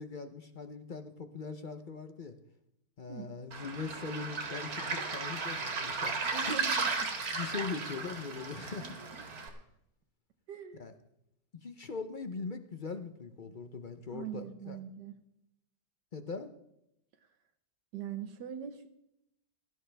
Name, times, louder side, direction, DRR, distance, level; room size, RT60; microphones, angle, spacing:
voice 1, 0.0-2.4 3.0-6.5 7.3-9.0 10.7-10.9 11.6-14.8 16.1-16.5, left 4 dB, 55° left, 9 dB, 0.5 m, -41 dB
Waves surf, 3.5-9.5, right 4 dB, 60° right, 2.2 m, -35 dB
voice 2, 6.3-7.1 8.8-8.9 10.5-10.8 14.1-15.1 17.9-18.9, right 8 dB, 80° right, 8 dB, 1.5 m, -42 dB
17.0 x 12.5 x 3.4 m, 0.80 s
omnidirectional pair, 1.8 m